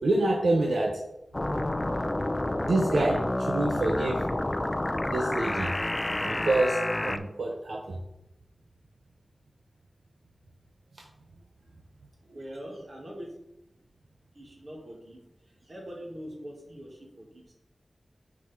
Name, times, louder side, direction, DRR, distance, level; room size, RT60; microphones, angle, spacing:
voice 1, 0.0-1.0 2.6-4.3 5.1-5.7 6.2-8.0 10.9-11.1 12.3-12.4, right 2 dB, 85° right, 1 dB, 0.7 m, -27 dB
sound 1, 1.3-7.2, left 1 dB, 25° left, 0.5 m, -29 dB
voice 2, 12.3-13.3 14.3-15.2 15.5-17.5, equal, 55° right, -2 dB, 2.0 m, -43 dB
6.0 x 4.7 x 4.3 m, 0.88 s
wide cardioid pair, 90°, 0 cm